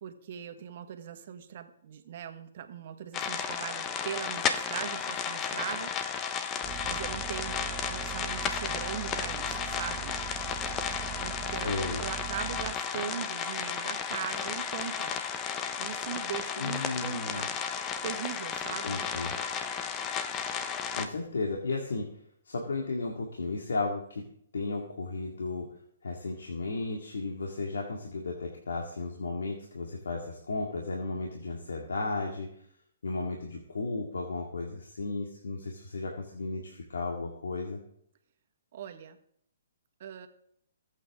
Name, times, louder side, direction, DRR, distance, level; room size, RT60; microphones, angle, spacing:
voice 1, 0.0-5.9 6.8-10.1 11.1-15.2 15.8-17.5 18.0-19.1 38.7-39.2 40.0-40.3, right 9 dB, 50° right, 7 dB, 1.6 m, -40 dB
sound 1, 3.1-21.1, left 7 dB, 20° left, 1.1 m, -33 dB
sound 2, 6.6-12.7, right 12 dB, 25° right, 0.9 m, -41 dB
voice 2, 11.6-12.0 16.6-17.5 18.8-19.3 21.0-22.1 22.4-24.3 24.5-25.7 26.0-32.5 33.0-37.8, left 3 dB, 80° left, 0 dB, 2.2 m, -34 dB
21.5 x 8.4 x 3.7 m, 0.69 s
hypercardioid pair, 140°, 0 cm